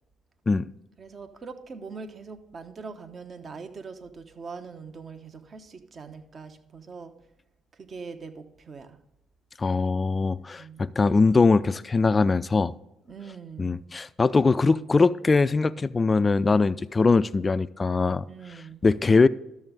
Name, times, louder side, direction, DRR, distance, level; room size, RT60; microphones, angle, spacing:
voice 1, 1.0-7.1 7.7-9.0 10.6-10.8 13.1-13.8 18.3-18.8, right 5 dB, 45° right, 8 dB, 1.0 m, -42 dB
voice 2, 9.6-12.7 13.6-18.3 18.8-19.3, left 4 dB, 30° left, 16 dB, 0.3 m, -21 dB
12.0 x 7.1 x 3.9 m, 0.88 s
hypercardioid pair, 50°, 0 cm